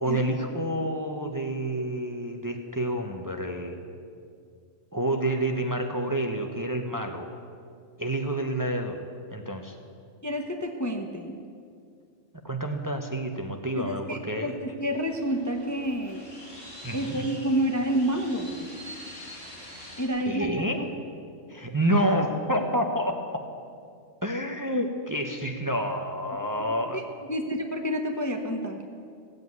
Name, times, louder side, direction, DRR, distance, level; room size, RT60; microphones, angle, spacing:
voice 1, 0.0-3.8 4.9-7.3 8.0-9.0 9.3-9.7 12.4-14.5 16.8-17.4 20.3-20.9 21.5-23.5 24.2-27.0, right 1 dB, 15° right, 3 dB, 0.9 m, -28 dB
voice 2, 10.2-11.4 13.8-16.2 16.9-18.7 20.0-20.5 20.8-20.9 26.9-27.0 27.3-28.9, equal, 15° left, 3 dB, 0.8 m, -29 dB
sound 1, 14.9-20.1, equal, 45° left, 4.0 m, -45 dB
16.0 x 8.1 x 9.5 m, 2.3 s
omnidirectional pair, 1.3 m